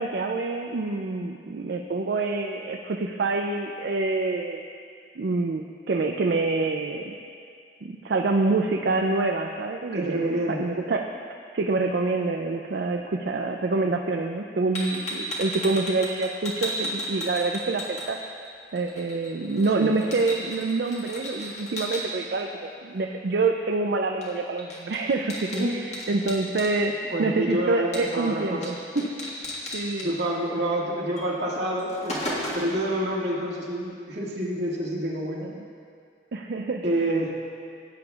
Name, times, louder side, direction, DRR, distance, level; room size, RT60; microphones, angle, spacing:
voice 1, 0.0-4.6 5.2-7.1 7.8-11.0 11.5-18.2 18.7-28.8 29.7-30.1 35.4-35.6 36.3-36.8, right 3 dB, 65° right, 2 dB, 0.4 m, -26 dB
voice 2, 9.9-10.6 19.7-20.2 25.5-25.7 27.0-29.1 30.0-35.4 36.8-37.3, right 1 dB, 85° right, -4 dB, 1.9 m, -28 dB
sound 1, 14.7-18.5 18.8-22.0 24.2-24.3 24.6-26.7 27.9-28.3 28.6-28.7 29.0-30.1 31.2-31.3 31.6-32.8, left 1 dB, 40° left, 1.7 m, -34 dB
17.0 x 8.6 x 2.4 m, 2.3 s
head